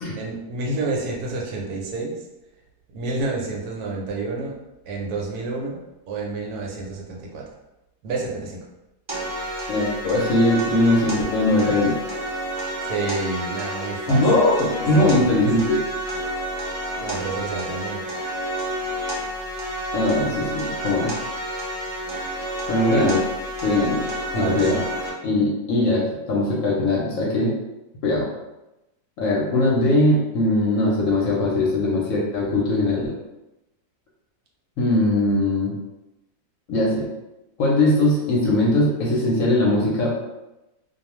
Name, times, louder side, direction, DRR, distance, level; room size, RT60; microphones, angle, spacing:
voice 1, 0.2-2.2 2.9-4.6 4.9-5.8 6.1-7.5 8.0-8.6 12.9-14.2 15.0-15.5 17.0-18.0 24.3-24.9, right 3 dB, 75° right, -2 dB, 1.1 m, -29 dB
sound 1, 9.1-25.1, right 1 dB, 40° right, 0.3 m, -30 dB
voice 2, 9.7-12.0 14.1-15.8 19.9-21.1 22.7-23.3 23.6-24.1 24.3-24.8 25.2-27.5 28.0-28.3 29.2-33.1 34.8-35.7 36.7-37.1 37.6-40.1, left 1 dB, 65° left, -3 dB, 0.9 m, -20 dB
2.4 x 2.3 x 3.0 m, 0.97 s
omnidirectional pair, 1.7 m